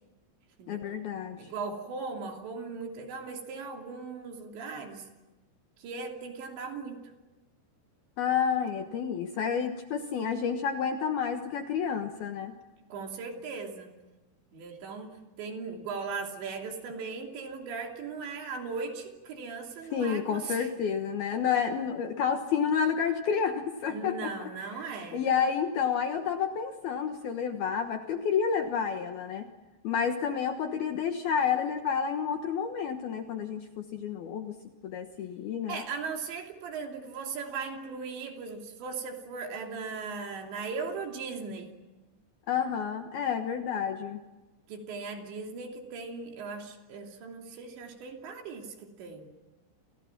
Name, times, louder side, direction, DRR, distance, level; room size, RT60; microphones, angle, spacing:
voice 1, 0.7-1.4 8.2-12.5 19.9-29.4 29.8-34.5 34.8-35.8 42.5-44.2, left 7 dB, 65° left, 5 dB, 2.6 m, -30 dB
voice 2, 1.4-5.1 5.8-7.0 12.9-13.9 14.5-20.7 23.9-25.2 35.7-41.7 44.7-49.3, right 4 dB, 60° right, 2 dB, 5.0 m, -38 dB
29.5 x 29.0 x 6.0 m, 1.1 s
omnidirectional pair, 5.9 m